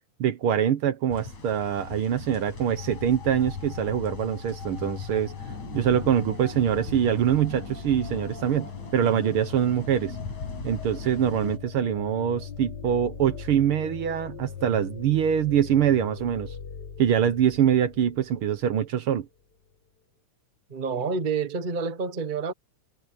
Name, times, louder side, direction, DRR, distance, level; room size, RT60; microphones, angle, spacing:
voice 1, 0.2-5.3 5.7-10.1 10.6-16.5 17.0-19.3, right 9 dB, 60° right, 1.5 m, -24 dB
sound 1, 1.1-11.6, left 3 dB, 75° left, 7.2 m, -41 dB
sound 2, 2.6-18.9, left 7 dB, 40° left, 1.8 m, -40 dB
voice 2, 20.7-22.5, right 5 dB, 85° right, 0.4 m, -28 dB
omnidirectional pair, 3.4 m